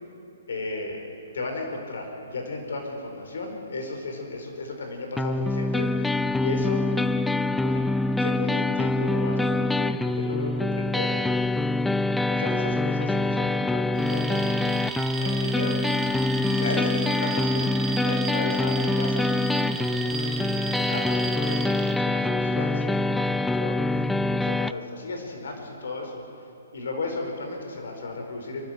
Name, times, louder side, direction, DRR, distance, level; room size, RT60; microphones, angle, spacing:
voice 1, 0.5-1.1 1.3-6.9 7.5-7.9 8.2-11.2 12.2-15.8 16.5-20.3 20.7-26.5 26.7-28.7, left 3 dB, 75° left, 3 dB, 4.7 m, -35 dB
sound 1, 5.2-24.7, left 2 dB, 5° left, 0.4 m, -25 dB
Alarm, 13.9-22.0, right 5 dB, 10° right, 1.4 m, -34 dB
28.0 x 12.5 x 8.2 m, 2.9 s
hypercardioid pair, 140°, 0 cm